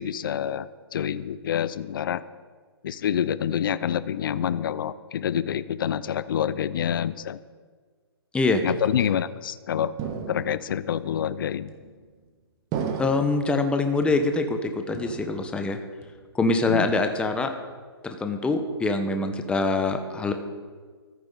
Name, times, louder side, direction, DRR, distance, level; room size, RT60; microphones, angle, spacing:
voice 1, 0.0-2.2 2.8-7.4 8.6-10.0 10.3-11.7 16.7-16.9, left 9 dB, 55° left, 16 dB, 0.7 m, -27 dB
sound 1, 10.0-10.8 11.7-12.2 12.7-13.5 14.0-14.6 14.9-15.7 16.0-16.5 16.9-17.5, right 7 dB, 25° right, 1.7 m, -35 dB
voice 2, 13.0-15.8 16.3-17.5 18.0-20.3, left 3 dB, 5° left, 6 dB, 1.1 m, -24 dB
25.0 x 9.6 x 4.0 m, 1.5 s
hypercardioid pair, 130°, 14 cm